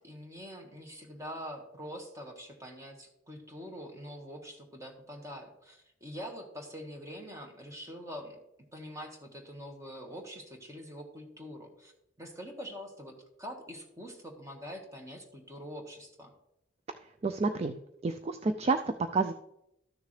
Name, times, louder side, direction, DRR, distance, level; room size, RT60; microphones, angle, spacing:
voice 1, 0.0-8.4 8.7-11.9 12.2-16.3, equal, 15° right, 2 dB, 1.5 m, -44 dB
voice 2, 17.2-19.3, right 3 dB, 35° right, 8 dB, 0.4 m, -30 dB
13.0 x 6.6 x 3.2 m, 0.83 s
head